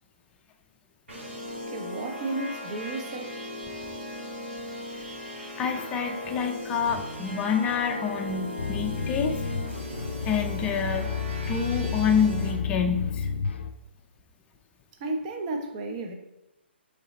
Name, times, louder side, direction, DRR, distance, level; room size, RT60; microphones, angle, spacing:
sound 1, 1.1-12.5, left 1 dB, 90° right, 1.6 m, -37 dB
voice 1, 1.7-3.4 15.0-16.1, right 2 dB, 35° right, 0.6 m, -33 dB
voice 2, 5.6-9.4 10.2-11.1 11.5-13.3, left 6 dB, 15° left, 0.4 m, -27 dB
sound 2, 8.6-13.7, left 6 dB, 70° left, 0.4 m, -31 dB
3.7 x 3.3 x 4.1 m
hypercardioid pair, 140°, 6 cm